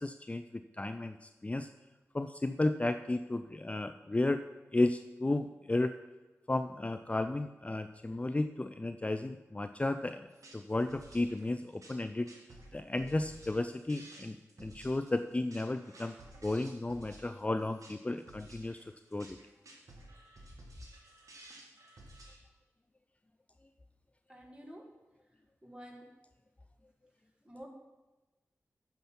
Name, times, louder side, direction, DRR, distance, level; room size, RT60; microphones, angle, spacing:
voice 1, 0.0-1.7 2.1-4.4 4.7-5.9 6.5-10.3 10.5-12.3 12.7-16.1 16.4-18.8 19.1-19.4, left 2 dB, 25° left, 9 dB, 0.4 m, -33 dB
sound 1, 10.3-22.4, right 1 dB, 80° right, 1.7 m, -54 dB
voice 2, 24.3-24.9 25.6-26.1 27.4-27.7, equal, 20° right, 1 dB, 2.1 m, -49 dB
9.2 x 5.9 x 5.7 m, 1.1 s
cardioid pair, 50°, 6 cm